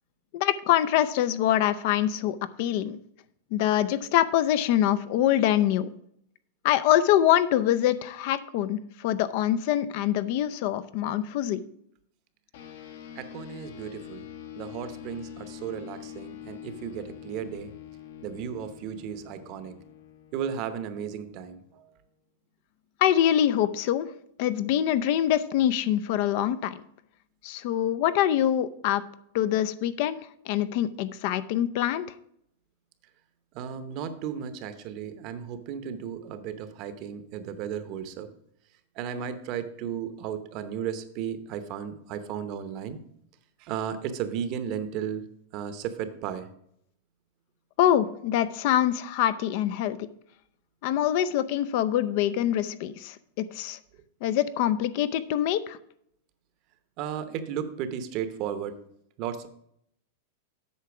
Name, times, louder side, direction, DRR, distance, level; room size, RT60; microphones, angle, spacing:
voice 1, 0.3-3.0 3.5-5.9 6.6-11.6 23.0-24.1 24.4-26.8 27.4-29.0 29.3-30.2 30.5-32.1 47.8-50.0 50.8-53.8 54.2-55.8, left 11 dB, 50° left, 14 dB, 0.5 m, -24 dB
sound 1, 12.5-22.3, left 10 dB, 70° left, 1.3 m, -45 dB
voice 2, 13.1-14.3 14.5-17.7 18.2-19.8 20.3-21.9 33.5-38.3 38.9-43.0 43.6-46.5 57.0-58.8 59.2-59.5, right 8 dB, 40° right, 11 dB, 0.8 m, -34 dB
8.4 x 5.7 x 6.0 m, 0.72 s
supercardioid pair, 155°, 0 cm